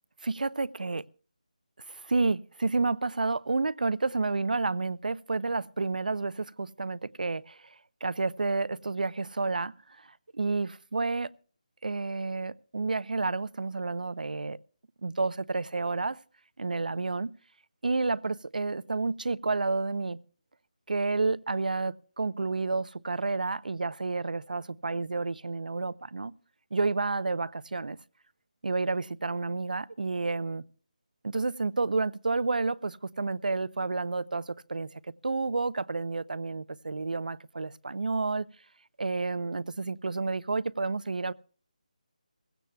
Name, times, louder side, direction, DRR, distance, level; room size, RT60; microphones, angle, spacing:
voice 1, 0.2-1.0 1.9-7.7 8.0-10.1 10.3-11.3 11.8-14.6 15.0-16.2 16.6-17.3 17.8-20.2 20.9-26.3 26.7-28.0 28.6-30.6 31.2-34.9 35.2-38.5 39.0-41.3, right 3 dB, 90° right, 0.5 m, -30 dB
21.5 x 16.0 x 2.2 m
figure-of-eight pair, 180°, 4 cm